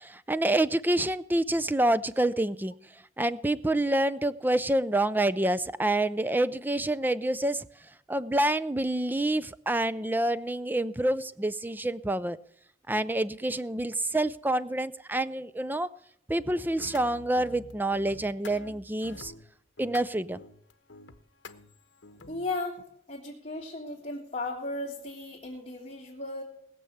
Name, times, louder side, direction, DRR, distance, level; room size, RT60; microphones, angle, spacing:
voice 1, 0.0-7.7 8.1-12.4 12.9-15.9 16.3-19.3 19.8-20.4, right 1 dB, 10° right, 16 dB, 0.5 m, -27 dB
sound 1, 16.6-22.8, left 3 dB, 75° left, 1.0 m, -48 dB
voice 2, 22.3-22.8 23.1-26.4, left 2 dB, 30° left, -5 dB, 2.9 m, -35 dB
20.0 x 6.9 x 7.8 m, 0.69 s
head